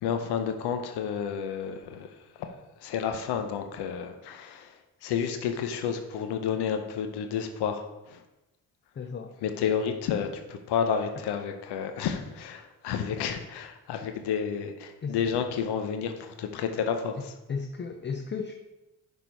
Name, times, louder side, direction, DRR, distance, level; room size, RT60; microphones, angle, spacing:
voice 1, 0.0-2.5 2.8-8.2 9.4-17.3, left 7 dB, 80° left, 7 dB, 0.7 m, -31 dB
voice 2, 9.0-9.3 15.0-15.2 17.5-18.5, left 5 dB, 30° left, 6 dB, 0.4 m, -34 dB
6.0 x 3.6 x 4.5 m, 0.99 s
supercardioid pair, 55°, 39 cm